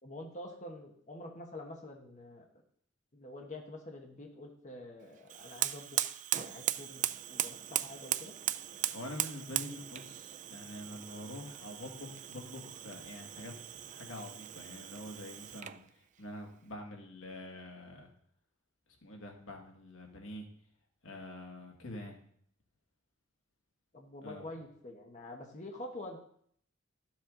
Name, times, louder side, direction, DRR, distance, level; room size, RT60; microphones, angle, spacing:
voice 1, 0.0-2.4 3.1-7.0 7.3-8.3 23.9-26.2, left 1 dB, 35° left, 1 dB, 1.2 m, -47 dB
Fire, 5.3-15.8, right 12 dB, 40° right, 0.3 m, -38 dB
voice 2, 8.9-15.8 16.2-18.1 19.0-20.5 21.0-22.2 24.2-24.5, left 1 dB, 80° left, 2 dB, 2.0 m, -46 dB
12.5 x 7.3 x 3.9 m, 0.64 s
head